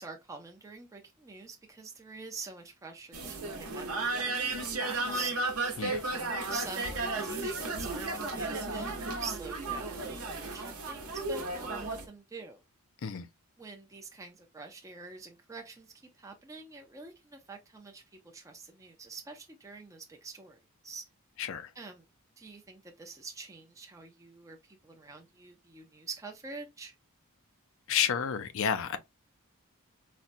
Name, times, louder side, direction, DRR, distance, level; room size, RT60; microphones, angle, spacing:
voice 1, 0.0-5.3 6.1-12.6 13.6-21.0 21.7-22.1 22.4-26.9, right 4 dB, 15° right, 0.5 m, -46 dB
sound 1, 3.1-12.1, right 3 dB, 80° right, 0.8 m, -34 dB
voice 2, 21.4-21.7 27.9-29.0, left 8 dB, 60° left, 0.4 m, -30 dB
4.1 x 2.2 x 2.5 m
head